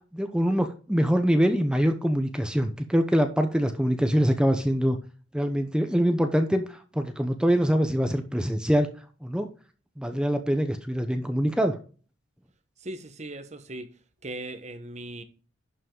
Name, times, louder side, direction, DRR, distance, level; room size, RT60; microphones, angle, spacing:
voice 1, 0.1-5.0 5.3-8.9 9.2-9.5 10.0-11.8, equal, 5° right, 0.7 m, -24 dB
voice 2, 12.8-13.9 14.2-15.2, right 1 dB, 35° right, 1.1 m, -38 dB
11.0 x 5.4 x 3.8 m
head